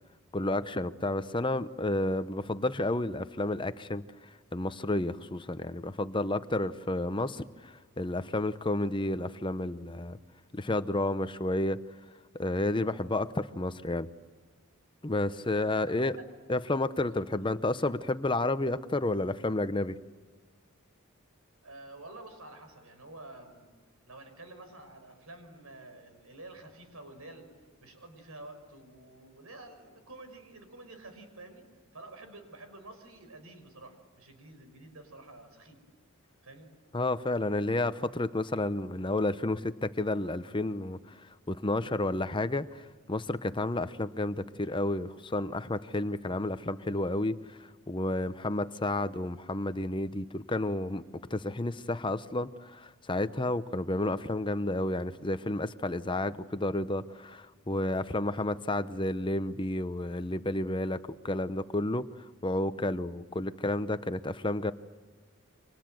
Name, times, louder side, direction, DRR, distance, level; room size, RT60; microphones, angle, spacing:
voice 1, 0.3-4.0 4.5-10.2 10.5-11.8 12.3-14.1 15.0-16.1 16.5-20.0 36.9-41.1 41.5-51.0 51.3-62.1 62.4-64.7, left 2 dB, 20° left, 12 dB, 0.8 m, -31 dB
voice 2, 15.8-16.3 17.1-17.4 21.6-23.7 24.1-27.5 27.8-31.7 31.9-35.8 36.4-36.7, right 2 dB, 75° right, 7 dB, 5.7 m, -49 dB
29.5 x 25.0 x 7.8 m, 1.4 s
head